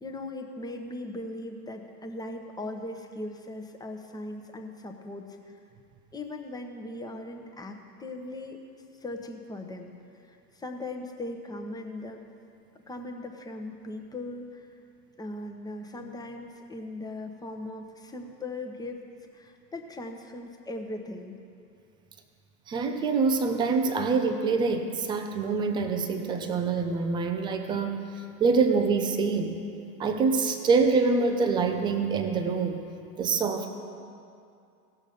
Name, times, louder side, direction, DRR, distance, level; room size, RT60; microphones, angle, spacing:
voice 1, 0.0-5.6 6.1-8.6 8.9-9.9 10.2-12.2 12.9-14.7 15.2-19.0 19.3-21.4, left 2 dB, 10° left, 4 dB, 0.9 m, -39 dB
voice 2, 22.7-28.1 28.4-29.6 30.0-32.8 33.2-33.7, right 4 dB, 10° right, 6 dB, 0.3 m, -25 dB
17.0 x 6.3 x 5.1 m, 2.5 s
hypercardioid pair, 95°, 48 cm